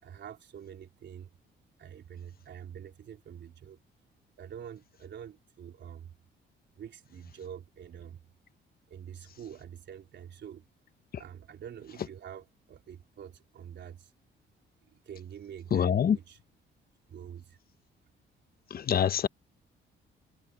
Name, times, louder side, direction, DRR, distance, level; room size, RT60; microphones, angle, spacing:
voice 1, 0.0-1.3 1.8-3.8 4.4-6.1 6.8-8.2 8.9-10.6 11.2-14.1 14.9-16.4 17.1-17.6, right 9 dB, 65° right, 4.0 m, -46 dB
voice 2, 15.7-16.2 18.7-19.3, left 8 dB, 50° left, 1.1 m, -25 dB
cardioid pair, 90°, 20 cm